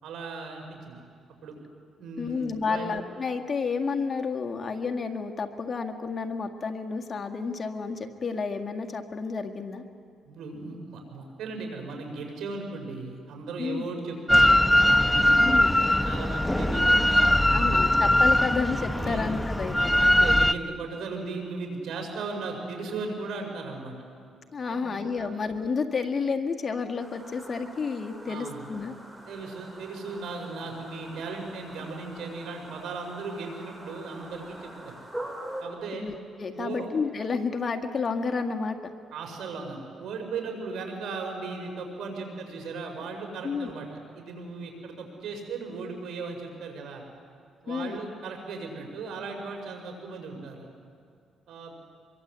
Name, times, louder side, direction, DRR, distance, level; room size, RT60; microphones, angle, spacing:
voice 1, 0.0-1.0 1.4-1.6 2.0-2.9 10.3-14.6 14.9-17.8 19.0-19.2 19.8-23.9 24.7-25.3 28.3-28.7 29.3-34.9 35.6-36.0 36.6-36.9 39.1-43.9 44.1-47.0 47.6-50.7 51.5-51.7, right 4 dB, 75° right, 3 dB, 5.4 m, -37 dB
voice 2, 2.2-9.8 13.6-13.9 15.4-15.7 17.5-19.9 24.5-28.9 36.0-38.9 43.4-43.7 47.7-48.0, left 5 dB, 40° left, 5 dB, 1.8 m, -30 dB
Drill, 14.3-20.5, left 1 dB, 10° left, 0.7 m, -21 dB
sound 1, 27.0-35.6, right 1 dB, 10° right, 5.4 m, -43 dB
25.5 x 23.5 x 8.2 m, 2.3 s
cardioid pair, 90°, 0 cm